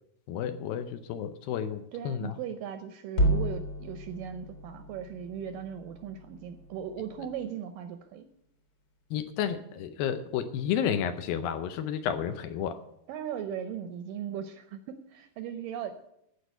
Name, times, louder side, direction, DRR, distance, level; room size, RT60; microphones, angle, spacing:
voice 1, 0.3-2.4 9.1-12.8, left 9 dB, 75° left, 10 dB, 2.3 m, -31 dB
voice 2, 1.9-8.3 13.1-16.0, right 8 dB, 80° right, 9 dB, 2.0 m, -38 dB
sound 1, 3.1-7.5, right 1 dB, 40° left, 2.1 m, -33 dB
14.5 x 5.1 x 9.0 m, 0.78 s
omnidirectional pair, 4.5 m